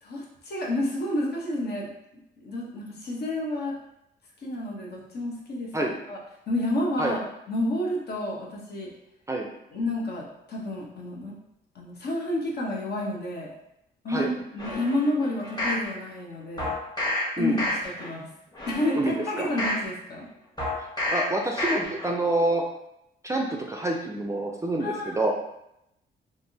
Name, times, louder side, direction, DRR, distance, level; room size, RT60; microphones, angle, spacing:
voice 1, 0.0-1.9 2.4-3.8 4.4-5.7 6.1-6.2 6.5-7.2 7.5-8.9 9.7-11.3 11.7-13.5 14.0-16.7 17.4-17.6 17.8-18.3 18.7-20.3 24.8-25.3, left 1 dB, 55° left, -2 dB, 0.9 m, -30 dB
sound 1, 14.6-15.8 16.6-17.2 17.6-18.1 18.5-19.8 20.6-21.2 21.6-22.1 22.5-22.6, left 1 dB, 20° left, 1.2 m, -30 dB
voice 2, 19.0-19.5 21.1-22.6 23.2-25.3, right 1 dB, 15° right, 1 dB, 0.4 m, -27 dB
3.4 x 2.5 x 2.7 m, 0.82 s
cardioid pair, 90°, 20 cm